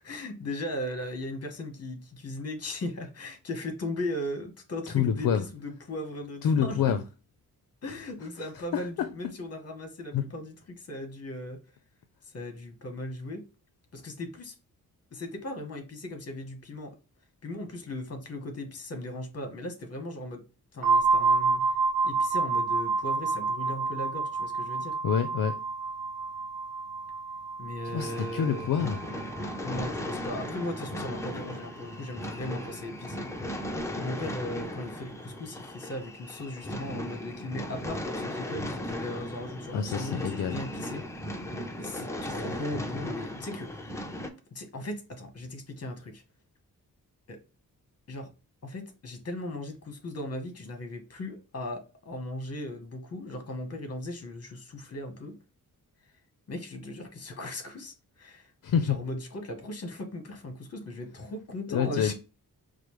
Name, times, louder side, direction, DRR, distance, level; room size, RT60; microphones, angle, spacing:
voice 1, 0.0-6.9 7.8-11.6 12.3-13.5 13.9-14.5 15.1-16.9 17.4-20.4 20.7-21.6 22.0-25.0 27.6-28.7 29.6-33.3 34.0-41.0 41.8-44.0 44.5-46.2 47.3-47.4 48.1-48.3 48.6-55.4 56.5-58.5 58.8-62.1, left 1 dB, 45° left, 1.0 m, -37 dB
voice 2, 4.9-5.4 6.4-7.0 8.7-9.1 10.1-10.2 25.0-25.6 27.9-29.0 39.7-40.6 58.6-59.0 61.7-62.1, left 8 dB, 65° left, 0.5 m, -27 dB
sound 1, 20.8-30.5, right 4 dB, 65° right, 0.9 m, -29 dB
sound 2, 28.0-44.3, left 1 dB, 10° left, 0.5 m, -37 dB
4.8 x 2.0 x 3.0 m
wide cardioid pair, 130°, 36 cm